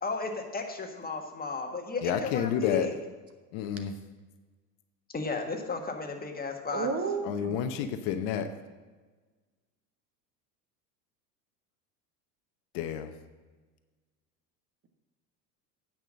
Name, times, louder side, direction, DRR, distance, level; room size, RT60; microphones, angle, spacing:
voice 1, 0.0-3.0 5.1-6.9, left 4 dB, 20° left, 4 dB, 1.6 m, -34 dB
voice 2, 2.0-2.9 3.5-4.0 7.2-8.5 12.7-13.1, left 8 dB, 55° left, 8 dB, 1.0 m, -30 dB
voice 3, 6.7-7.7, right 5 dB, 30° right, 6 dB, 1.4 m, -32 dB
9.2 x 6.0 x 7.4 m, 1.3 s
hypercardioid pair, 85°, 49 cm